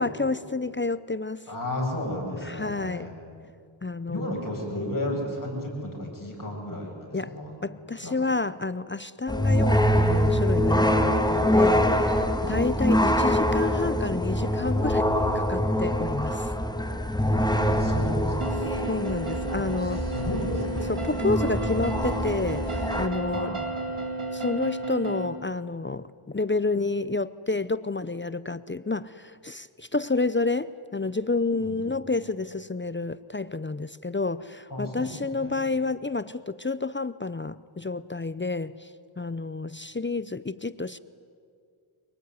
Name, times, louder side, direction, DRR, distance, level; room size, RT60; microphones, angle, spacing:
voice 1, 0.0-1.4 2.4-3.1 3.8-4.5 7.1-7.4 7.6-16.5 18.9-20.0 20.8-23.5 24.3-38.9 39.2-41.0, left 3 dB, 25° left, 16 dB, 0.6 m, -30 dB
voice 2, 1.5-3.1 4.1-7.6 8.0-8.2 12.3-12.6 17.5-18.5 20.1-20.9 23.3-23.5 31.6-31.8 34.7-35.1 35.4-35.6, left 1 dB, 40° left, -1 dB, 8.0 m, -33 dB
sound 1, 9.3-23.1, equal, 10° left, 2.0 m, -24 dB
sound 2, 18.4-25.3, right 2 dB, 85° right, 2.8 m, -33 dB
25.0 x 19.5 x 9.6 m, 2.3 s
wide cardioid pair, 45°, 49 cm